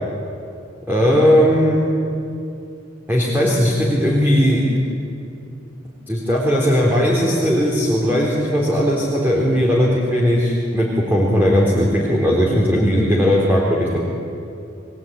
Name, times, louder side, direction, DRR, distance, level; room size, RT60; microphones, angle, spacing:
voice 1, 0.9-1.8 3.1-4.6 6.1-14.0, equal, 10° right, -5 dB, 3.6 m, -17 dB
28.5 x 20.0 x 8.7 m, 2.6 s
head